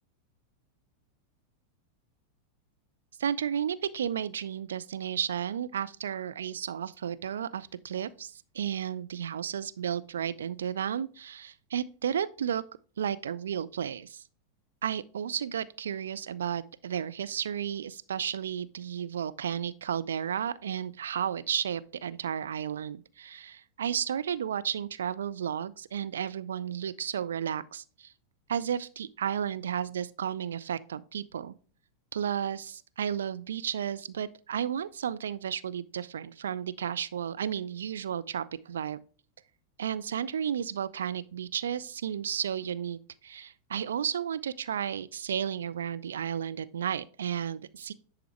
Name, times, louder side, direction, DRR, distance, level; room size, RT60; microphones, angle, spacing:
voice 1, 3.2-12.6 13.0-14.2 14.8-28.1 28.5-31.5 32.1-39.0 39.8-47.9, right 8 dB, 65° right, 0.4 m, -33 dB
10.0 x 4.9 x 3.1 m
figure-of-eight pair, 90°, 0 cm